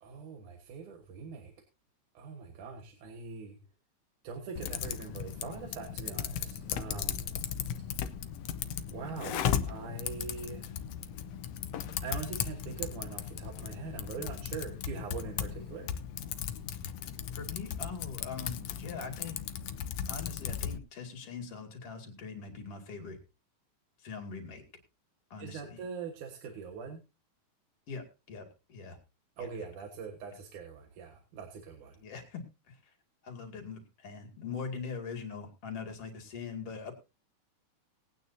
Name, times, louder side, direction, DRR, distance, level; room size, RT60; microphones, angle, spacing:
voice 1, 0.0-1.5 2.1-3.6 4.2-7.3 8.9-10.8 12.0-15.9 25.4-27.0 29.4-32.0, right 5 dB, 85° right, 3 dB, 2.9 m, -42 dB
Typing, 4.6-20.8, left 9 dB, 70° left, 1.7 m, -37 dB
voice 2, 17.3-19.3 20.1-23.2 24.0-24.6 25.3-25.8 27.9-29.0 29.4-29.6 32.0-32.4 32.7-32.8 33.2-36.9, left 5 dB, 55° left, 4 dB, 3.3 m, -42 dB
21.0 x 9.2 x 2.7 m, 0.29 s
omnidirectional pair, 3.4 m